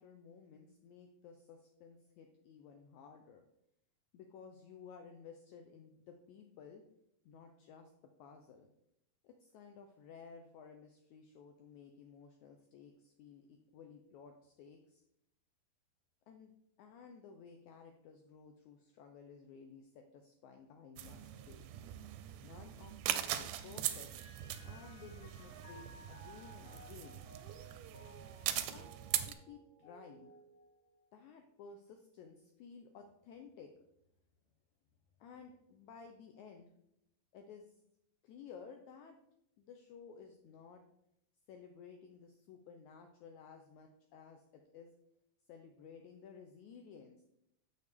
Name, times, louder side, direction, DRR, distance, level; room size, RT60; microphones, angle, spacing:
voice 1, 0.0-3.5 4.1-6.8 7.3-7.9 8.2-8.7 9.2-15.0 16.3-16.5 16.8-21.7 22.4-24.1 24.6-27.2 28.7-28.9 29.2-30.3 31.1-33.7 35.2-36.7 37.3-37.7 38.2-39.2 39.6-40.8 41.5-44.9 45.5-47.2, left 6 dB, 85° left, 4 dB, 1.7 m, -55 dB
sound 1, 21.0-29.3, right 12 dB, 80° right, 1.9 m, -41 dB
Mallet percussion, 23.6-31.3, right 1 dB, 60° left, 2.2 m, -59 dB
6.7 x 6.5 x 3.5 m, 0.78 s
omnidirectional pair, 4.1 m